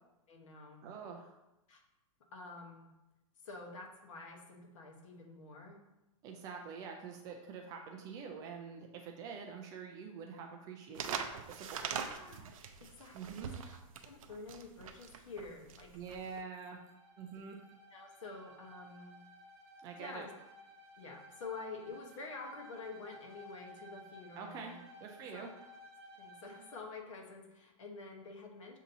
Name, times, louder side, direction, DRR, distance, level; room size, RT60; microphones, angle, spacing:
voice 1, 0.3-0.9 1.7-1.8 2.3-2.9 3.4-5.8 12.0-13.5 14.0-15.9 17.9-19.2 20.0-20.3 21.0-24.8 25.3-25.5 26.2-28.8, left 3 dB, 65° left, 2 dB, 1.1 m, -48 dB
voice 2, 0.8-1.3 6.2-11.2 11.5-11.9 13.1-13.5 15.9-16.8 17.2-17.6 19.8-20.2 24.4-24.7 25.0-25.5, right 6 dB, 20° right, 3 dB, 0.3 m, -46 dB
sound 1, 10.9-16.4, right 7 dB, 75° right, 0.5 m, -42 dB
Bowed string instrument, 16.5-26.9, equal, 45° right, 0.9 m, -56 dB
7.1 x 2.8 x 2.7 m, 0.97 s
hypercardioid pair, 155°, 18 cm